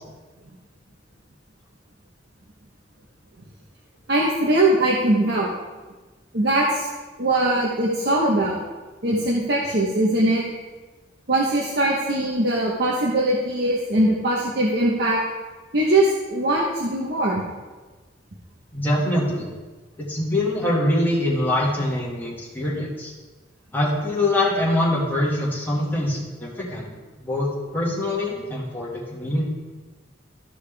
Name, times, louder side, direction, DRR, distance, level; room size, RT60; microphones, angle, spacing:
voice 1, 4.1-5.5 6.3-6.9 7.2-8.6 9.0-10.4 11.3-15.2 15.7-17.4, right 1 dB, 60° right, -3 dB, 1.0 m, -21 dB
voice 2, 18.7-19.5 20.0-23.1 23.7-26.9 27.2-29.4, left 1 dB, 10° left, -5 dB, 2.0 m, -24 dB
13.5 x 5.0 x 3.5 m, 1.3 s
head